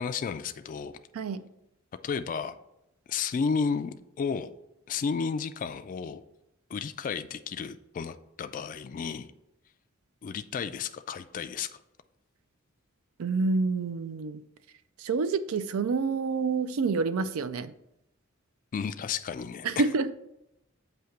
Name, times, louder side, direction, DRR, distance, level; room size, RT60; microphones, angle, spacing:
voice 1, 0.0-1.0 2.0-2.6 3.1-4.5 4.9-6.2 6.7-9.3 10.2-11.8 18.7-19.8, left 5 dB, 40° left, 10 dB, 0.3 m, -32 dB
voice 2, 13.2-14.4 15.0-17.7 19.6-20.1, right 4 dB, 80° right, 13 dB, 0.4 m, -28 dB
7.8 x 2.8 x 5.7 m, 0.84 s
head